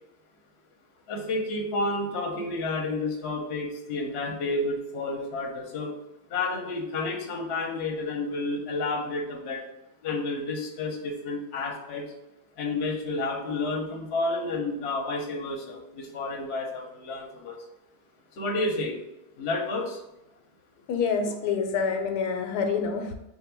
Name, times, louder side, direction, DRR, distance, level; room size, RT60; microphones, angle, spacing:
voice 1, 1.1-5.9 6.3-9.6 10.0-12.0 12.6-17.6 18.4-19.0 19.4-20.0, left 2 dB, 55° left, 1 dB, 0.8 m, -30 dB
voice 2, 20.9-23.1, left 5 dB, 90° left, 5 dB, 1.1 m, -27 dB
3.7 x 2.1 x 4.4 m, 0.89 s
omnidirectional pair, 1.7 m